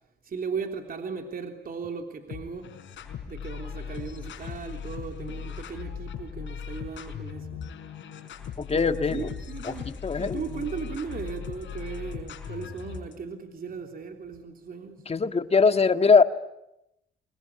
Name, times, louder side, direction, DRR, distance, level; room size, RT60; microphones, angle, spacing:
voice 1, 0.2-2.7 3.3-7.6 8.7-15.1, right 5 dB, 45° right, 4 dB, 3.4 m, -37 dB
sound 1, 2.3-13.1, left 7 dB, 70° left, 5.2 m, -38 dB
voice 2, 8.6-9.3 9.7-10.4 15.1-16.2, left 5 dB, 30° left, 9 dB, 1.8 m, -22 dB
26.5 x 21.5 x 9.9 m, 0.84 s
cardioid pair, 90°, 20 cm